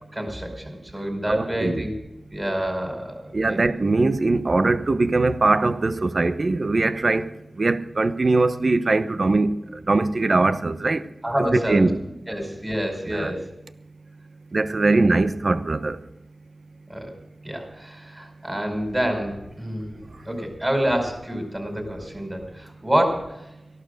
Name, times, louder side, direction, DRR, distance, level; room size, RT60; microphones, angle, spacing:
voice 1, 0.1-1.9 2.3-3.6 11.2-11.8 12.3-13.5 16.9-17.1 17.4-20.0 20.2-23.4, equal, 20° right, 5.1 m, -27 dB
voice 2, 1.3-1.9 3.3-7.3 7.6-9.5 9.9-11.0 11.5-12.0 13.1-13.3 14.5-16.0, right 3 dB, 55° right, 1.0 m, -21 dB
15.5 x 11.5 x 6.5 m
wide cardioid pair, 55°, 0 cm